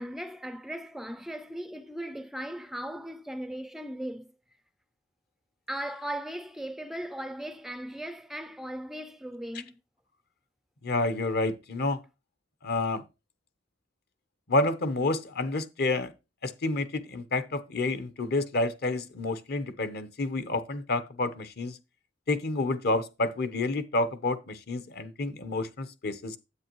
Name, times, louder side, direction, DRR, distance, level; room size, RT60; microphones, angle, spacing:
voice 1, 0.0-4.3 5.7-9.8, right 1 dB, ahead, 0.3 m, -38 dB
voice 2, 10.8-12.0 12.6-13.0 14.5-16.1 16.4-21.8 22.3-26.4, left 2 dB, 55° left, 0.9 m, -29 dB
9.7 x 8.2 x 3.0 m
head